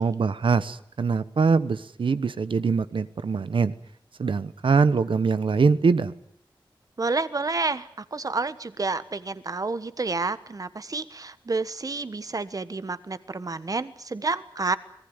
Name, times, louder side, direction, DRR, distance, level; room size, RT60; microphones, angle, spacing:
voice 1, 0.0-3.7 4.2-6.1, right 5 dB, 85° right, 14 dB, 1.1 m, -23 dB
voice 2, 7.0-14.8, right 3 dB, 45° right, 14 dB, 1.3 m, -29 dB
25.5 x 19.0 x 9.8 m, 0.67 s
wide cardioid pair, 95°, 9 cm